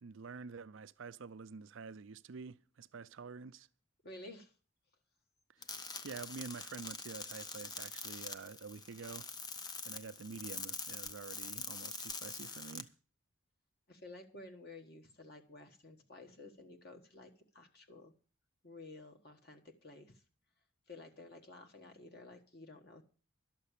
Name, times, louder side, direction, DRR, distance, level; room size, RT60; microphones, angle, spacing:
voice 1, 0.0-3.7 6.0-9.3 9.8-12.9, right 5 dB, 70° right, 0.5 m, -48 dB
voice 2, 4.0-4.5 13.9-18.1 18.6-20.2 20.9-23.0, left 2 dB, 50° left, 1.4 m, -53 dB
sound 1, 5.6-12.8, left 4 dB, 20° left, 0.6 m, -44 dB
12.5 x 6.6 x 8.4 m
head